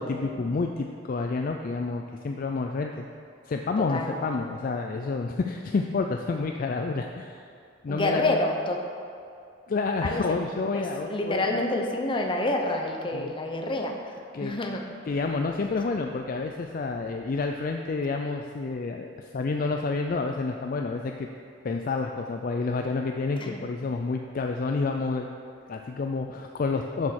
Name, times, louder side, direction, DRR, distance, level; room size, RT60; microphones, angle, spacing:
voice 1, 0.0-3.0 3.5-7.4 7.8-8.4 9.7-11.6 13.1-13.3 14.3-14.5 15.1-21.3 21.6-25.3 25.7-27.1, left 3 dB, 45° left, 3 dB, 0.4 m, -29 dB
voice 2, 3.8-4.1 7.9-8.8 10.0-10.2 10.7-14.1 14.4-14.8 23.4-23.6, left 2 dB, 25° left, 2 dB, 0.8 m, -28 dB
7.3 x 6.2 x 6.4 m, 2.4 s
head